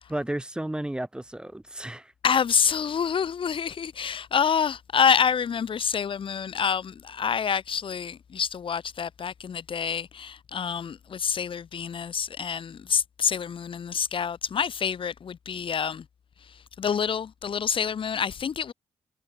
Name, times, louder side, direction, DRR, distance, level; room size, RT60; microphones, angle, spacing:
voice 1, 0.1-2.1, right 1 dB, 5° right, 1.3 m, -33 dB
voice 2, 2.2-16.1 16.4-18.7, left 7 dB, 50° left, 1.7 m, -27 dB
wide cardioid pair, 145°, 12 cm